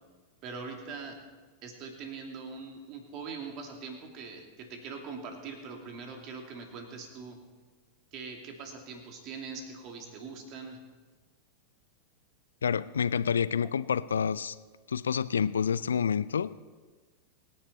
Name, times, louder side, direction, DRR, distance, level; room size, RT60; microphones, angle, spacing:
voice 1, 0.4-1.2 1.6-7.4 8.1-10.8, right 4 dB, 40° right, 3 dB, 2.9 m, -42 dB
voice 2, 12.6-14.6 14.9-16.5, left 7 dB, 70° left, 17 dB, 0.5 m, -28 dB
24.5 x 10.5 x 4.3 m, 1.4 s
figure-of-eight pair, 90°, 0 cm